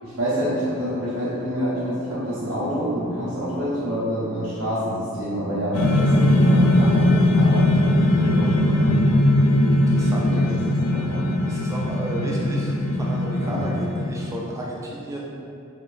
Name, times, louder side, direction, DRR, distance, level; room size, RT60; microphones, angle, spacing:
voice 1, 0.0-9.2 10.0-10.5 10.8-11.3 13.4-13.7, equal, 65° right, -9 dB, 0.6 m, -27 dB
sound 1, 5.7-14.4, left 1 dB, 75° left, 0.3 m, -19 dB
voice 2, 9.9-10.3 11.5-15.3, right 1 dB, 15° right, -4 dB, 0.3 m, -33 dB
2.6 x 2.0 x 3.0 m, 2.6 s
head